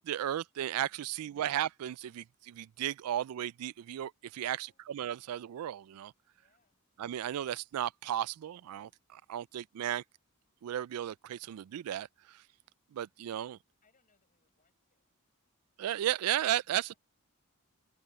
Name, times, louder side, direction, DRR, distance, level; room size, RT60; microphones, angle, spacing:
voice 1, 0.0-6.1 7.0-10.0 10.6-12.4 12.9-13.6 15.8-16.9, right 11 dB, 75° right, 0.3 m, -35 dB
voice 2, 0.9-1.3 4.3-4.8 6.3-6.8 13.8-15.2 16.6-17.0, left 4 dB, 40° left, 6.5 m, -74 dB
open air
head